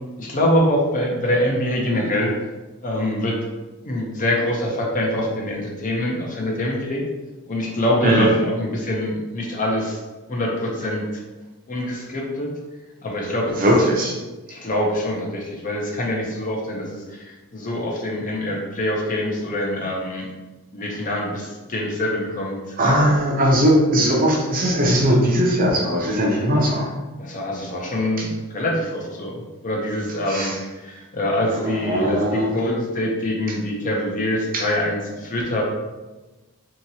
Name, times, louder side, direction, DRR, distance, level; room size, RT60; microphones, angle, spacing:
voice 1, 0.2-2.3 2.8-3.4 3.8-7.0 7.5-10.0 10.3-11.2 11.7-12.5 13.0-13.6 14.5-20.3 20.7-23.2 27.2-29.3 29.6-35.6, left 1 dB, 35° left, -2 dB, 0.5 m, -24 dB
voice 2, 13.6-14.2 22.8-26.9 28.2-28.3 30.3-30.6 31.6-32.6 34.5-34.6, equal, 40° right, -2 dB, 0.6 m, -19 dB
2.8 x 2.8 x 2.7 m, 1.2 s
head